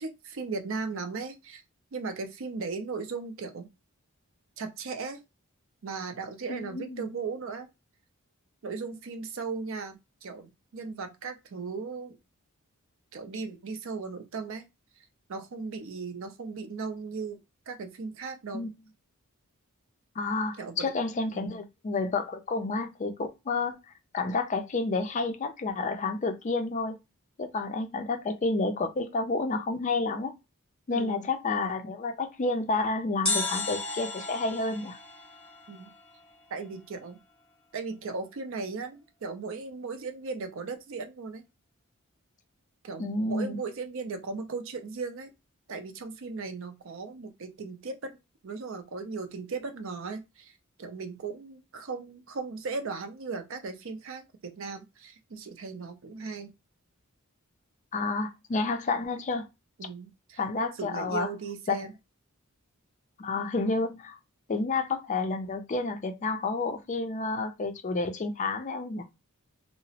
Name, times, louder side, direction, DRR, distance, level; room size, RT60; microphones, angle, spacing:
voice 1, 0.0-1.6 1.9-3.7 4.6-5.2 5.8-7.7 8.6-12.2 13.1-14.7 15.3-18.7 20.6-20.9 21.3-21.6 30.9-31.3 35.7-35.9 36.5-37.2 37.7-41.4 42.8-45.3 45.7-48.2 48.4-50.5 50.8-56.5 59.8-60.4 60.8-61.9, right 4 dB, 60° right, 0.5 m, -37 dB
voice 2, 6.5-7.1 18.5-18.7 20.2-23.8 24.1-27.0 27.4-30.3 30.9-35.0 43.0-43.6 57.9-59.5 60.4-61.3 61.7-61.9 63.2-64.2 64.5-69.0, left 3 dB, 35° left, 0.4 m, -30 dB
sound 1, 33.3-36.3 36.6-36.7, left 3 dB, 5° left, 0.9 m, -34 dB
2.9 x 2.0 x 2.7 m
head